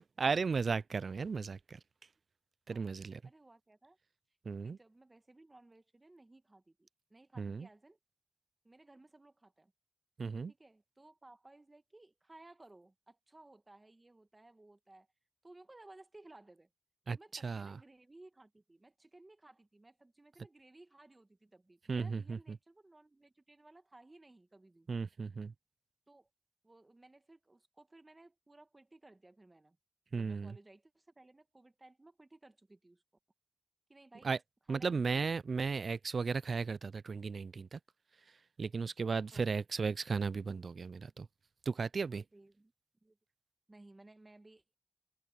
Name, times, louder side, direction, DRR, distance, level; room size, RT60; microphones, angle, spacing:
voice 1, 0.0-1.8 2.7-3.2 4.5-4.8 7.4-7.7 10.2-10.5 17.1-17.2 17.4-17.8 21.9-22.6 24.9-25.5 30.1-30.6 34.2-34.4 34.7-37.8 38.6-41.3 41.7-42.2, right 5 dB, 55° right, 0.3 m, -35 dB
voice 2, 3.2-4.0 4.6-8.0 8.6-9.7 10.5-15.1 15.4-16.7 17.1-24.9 26.1-26.3 26.6-29.8 30.1-33.0 33.9-34.3 34.7-35.3 39.3-39.6 42.3-42.7 43.0-43.2 43.7-44.6, right 2 dB, 20° right, 1.7 m, -59 dB
cardioid pair, 85°, 0 cm